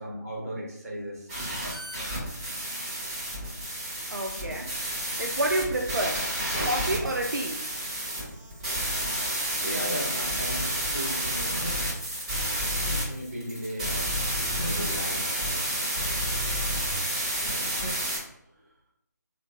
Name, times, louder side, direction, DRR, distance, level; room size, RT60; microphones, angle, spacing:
voice 1, 0.0-1.3 9.6-11.6 12.9-14.1 14.4-15.7 17.4-17.8, equal, 50° right, -4 dB, 1.4 m, -36 dB
sound 1, 1.3-18.2, equal, 25° right, 1.3 m, -30 dB
voice 2, 4.1-4.7 5.2-6.3 6.6-7.6, right 1 dB, 85° right, 1 dB, 0.5 m, -29 dB
3.6 x 2.7 x 2.5 m, 0.78 s
figure-of-eight pair, 155°, 10 cm